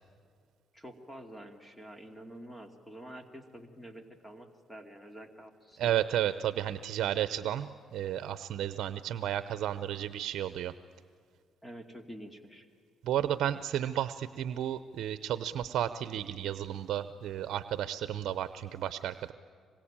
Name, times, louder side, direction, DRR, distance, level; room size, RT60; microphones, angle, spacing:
voice 1, 0.7-6.0 11.6-12.7, equal, 10° left, 6 dB, 2.6 m, -48 dB
voice 2, 5.8-10.7 13.0-19.3, right 11 dB, 75° right, 13 dB, 0.7 m, -32 dB
26.0 x 22.5 x 8.9 m, 2.3 s
cardioid pair, 90°, 0 cm